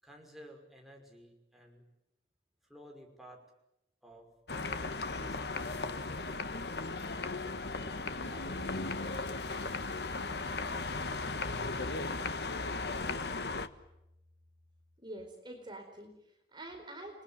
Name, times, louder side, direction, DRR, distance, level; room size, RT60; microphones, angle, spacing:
voice 1, 0.0-1.9 2.6-3.4 4.0-4.3 4.9-5.4 5.7-6.4 7.7-8.8 9.1-9.8 10.3-11.9, equal, ahead, 0 dB, 5.7 m, -55 dB
sound 1, 4.5-13.7, left 3 dB, 70° left, 1.5 m, -36 dB
sound 2, 8.2-15.0, left 1 dB, 65° right, 2.5 m, -55 dB
voice 2, 15.0-17.2, right 1 dB, 25° right, 3 dB, 4.3 m, -47 dB
30.0 x 21.5 x 9.2 m, 0.86 s
head